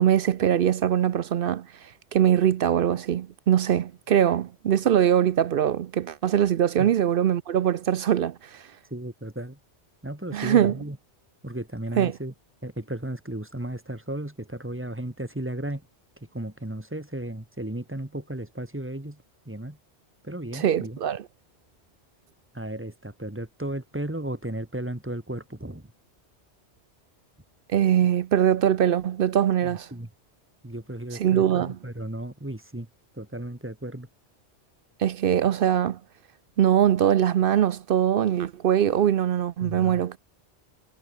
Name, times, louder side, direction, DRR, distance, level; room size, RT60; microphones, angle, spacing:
voice 1, 0.0-8.6 10.3-10.7 12.0-12.2 20.5-21.3 27.7-29.9 31.1-31.8 35.0-36.0 36.6-40.2, right 10 dB, 60° right, 0.7 m, -22 dB
voice 2, 8.9-9.6 10.0-11.0 11.4-12.3 12.6-15.8 16.3-19.8 20.2-21.0 22.5-25.9 29.6-30.1 30.6-32.9 33.1-34.1 39.6-40.0, right 1 dB, 10° right, 1.8 m, -35 dB
omnidirectional pair, 1.2 m